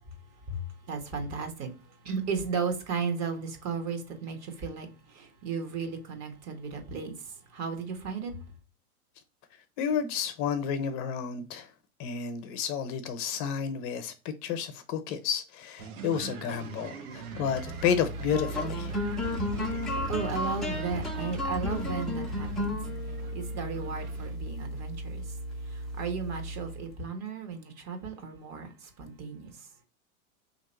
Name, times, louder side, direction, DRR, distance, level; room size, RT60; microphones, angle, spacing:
voice 1, 0.4-8.4 19.0-19.4 20.0-22.8 23.0-29.7, right 5 dB, 40° right, 1.2 m, -35 dB
voice 2, 9.8-11.7 12.0-19.0, left 7 dB, 45° left, 0.7 m, -31 dB
sound 1, 15.8-24.4, right 5 dB, 85° right, 0.9 m, -43 dB
sound 2, 17.3-27.0, equal, ahead, 0.5 m, -34 dB
3.4 x 2.9 x 4.2 m
hypercardioid pair, 110°, 43 cm